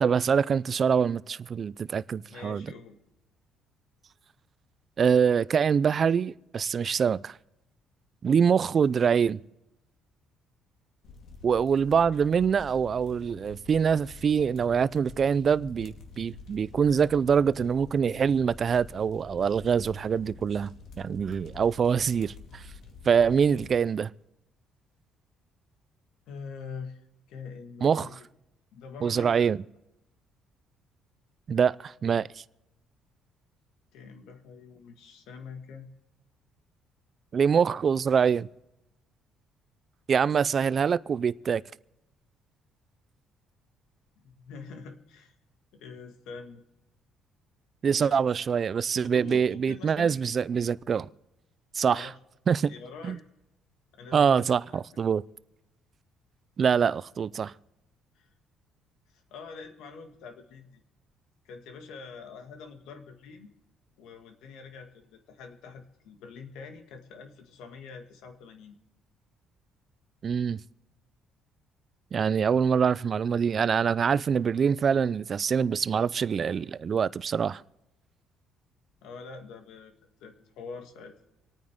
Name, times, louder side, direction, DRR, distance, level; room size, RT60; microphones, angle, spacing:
voice 1, 0.0-2.7 5.0-7.4 8.2-9.4 11.4-20.7 21.0-22.7 23.1-24.1 27.8-28.1 29.0-29.6 31.5-32.3 37.3-38.5 40.1-41.6 47.8-51.1 51.7-52.1 52.5-52.7 53.0-53.2 54.1-55.2 56.6-57.5 70.2-70.6 72.1-77.6, right 6 dB, 40° right, 0.4 m, -24 dB
voice 2, 2.2-3.0 26.3-28.2 28.7-29.5 33.9-35.9 44.2-45.3 45.7-46.6 47.9-48.3 49.0-50.1 51.8-52.1 52.7-53.2 53.9-54.5 58.2-58.3 59.1-60.8 61.5-63.5 64.0-68.8 79.0-79.9 80.2-81.1, left 5 dB, 85° left, 1.8 m, -45 dB
sound 1, 11.0-23.8, left 4 dB, 65° left, 2.2 m, -48 dB
27.0 x 9.3 x 3.6 m
cardioid pair, 125°, 0 cm